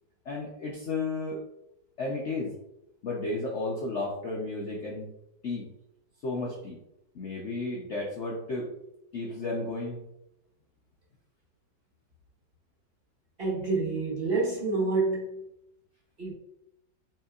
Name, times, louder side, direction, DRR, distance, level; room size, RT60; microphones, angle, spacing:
voice 1, 0.2-1.4 2.0-2.5 3.0-5.1 5.4-5.7 6.2-6.8 7.1-8.7 9.1-10.0, left 2 dB, 60° left, -2 dB, 0.7 m, -33 dB
voice 2, 13.4-15.4 16.2-16.3, right 3 dB, 35° right, -6 dB, 1.2 m, -28 dB
5.7 x 3.3 x 2.4 m, 0.83 s
omnidirectional pair, 2.0 m